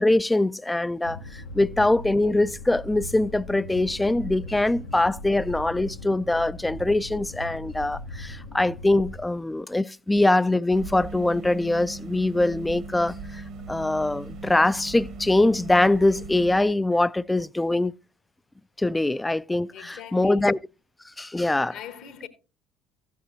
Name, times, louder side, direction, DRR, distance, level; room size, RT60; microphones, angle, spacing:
voice 1, 0.0-13.4 13.7-17.9 18.8-20.6 21.2-21.7, left 2 dB, 10° left, 0.4 m, -23 dB
sound 1, 1.0-9.2, left 2 dB, 80° left, 1.2 m, -39 dB
sound 2, 10.7-16.7, right 3 dB, 60° right, 1.2 m, -39 dB
voice 2, 19.7-20.5 21.7-22.3, left 9 dB, 60° left, 1.4 m, -41 dB
14.5 x 8.6 x 2.8 m
hypercardioid pair, 60°, 0 cm